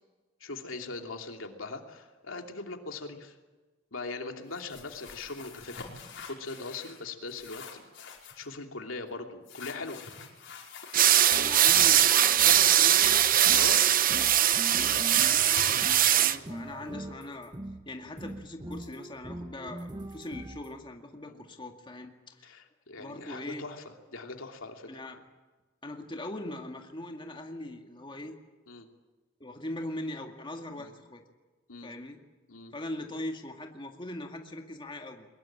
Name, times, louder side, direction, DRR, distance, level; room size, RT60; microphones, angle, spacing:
voice 1, 0.4-3.3 3.9-7.8 8.4-10.0 13.5-13.8 21.3-21.4 22.4-23.8 24.1-24.9 28.7-28.9 30.8-30.9 31.7-31.9 32.5-32.7, left 3 dB, 85° left, 4 dB, 2.9 m, -40 dB
sound 1, 4.5-7.0 7.3-8.5 9.5-12.0 12.9-14.2 14.5-17.1, left 5 dB, 65° left, 5.1 m, -46 dB
sound 2, 10.9-16.4, right 11 dB, 45° right, 0.9 m, -21 dB
sound 3, 11.1-16.1 16.5-17.8 18.2-20.7, right 1 dB, 20° right, 1.5 m, -43 dB
voice 2, 11.3-13.1 14.7-17.5 17.8-22.6 23.0-23.6 24.9-25.2 25.8-28.4 29.4-31.2 31.8-32.2 32.7-35.3, left 1 dB, 25° left, 3 dB, 2.1 m, -41 dB
23.0 x 21.0 x 8.9 m, 1.2 s
head